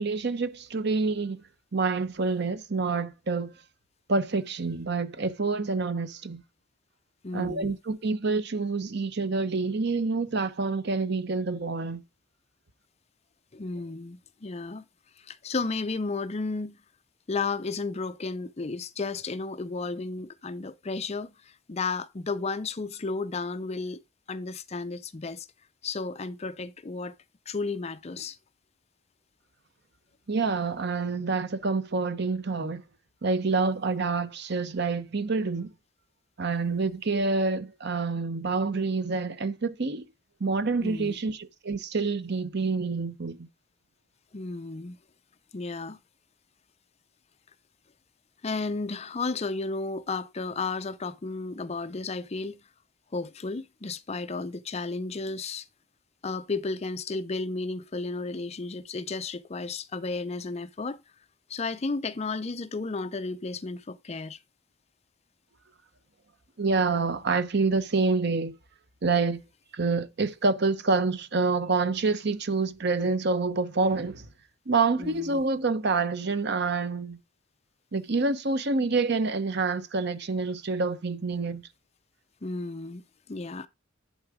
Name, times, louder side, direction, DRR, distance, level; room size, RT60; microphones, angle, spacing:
voice 1, 0.0-1.4 1.7-3.5 4.1-6.4 7.3-12.0 30.3-32.8 33.2-35.7 36.4-40.0 40.4-43.5 66.6-68.5 69.0-69.4 69.7-74.3 74.7-77.2 77.9-81.6, right 3 dB, 55° right, 0.8 m, -27 dB
voice 2, 7.2-7.8 13.5-14.8 15.2-16.8 17.3-24.0 24.3-25.5 25.8-27.1 27.5-28.4 40.8-41.2 44.3-45.0 45.5-46.0 48.4-52.6 53.1-55.7 56.2-61.0 61.5-64.4 75.0-75.4 82.4-83.0 83.3-83.7, left 3 dB, 30° left, 0.5 m, -33 dB
11.0 x 4.0 x 4.8 m
head